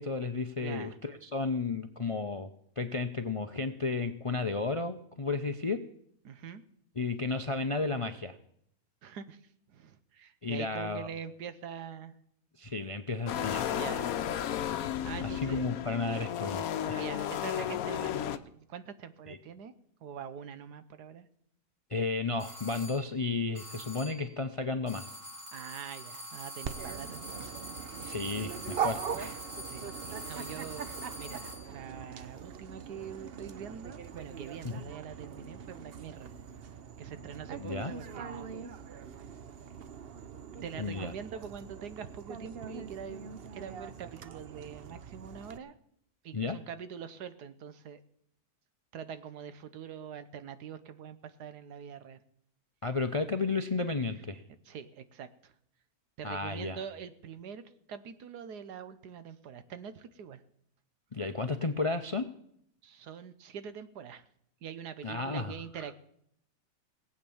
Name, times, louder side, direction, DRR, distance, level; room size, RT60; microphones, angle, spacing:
voice 1, 0.0-2.5 2.8-5.8 7.0-8.4 10.4-11.1 12.6-13.7 15.2-17.0 19.3-19.4 21.9-25.1 28.0-29.4 34.6-34.7 37.6-37.9 40.8-41.1 46.3-46.6 52.8-54.4 56.2-56.8 61.1-62.3 65.0-65.8, left 3 dB, 50° left, 9 dB, 0.4 m, -33 dB
voice 2, 0.6-1.0 6.2-6.6 9.0-12.1 13.7-14.2 14.7-15.6 17.0-19.7 20.0-21.3 25.5-27.5 29.1-29.2 29.6-30.9 31.1-36.3 36.7-38.5 40.6-45.7 46.2-48.0 48.9-52.2 54.6-55.5 56.2-60.4 62.8-64.3 64.6-65.9, right 7 dB, 90° right, 12 dB, 1.5 m, -44 dB
sound 1, 13.3-18.4, left 10 dB, 70° left, 1.1 m, -33 dB
sound 2, 22.4-23.1 23.5-24.3 24.9-31.7, equal, 30° right, 3.2 m, -45 dB
Dog, 26.6-45.6, right 7 dB, 50° right, 0.8 m, -42 dB
18.0 x 8.3 x 7.0 m, 0.69 s
omnidirectional pair, 1.7 m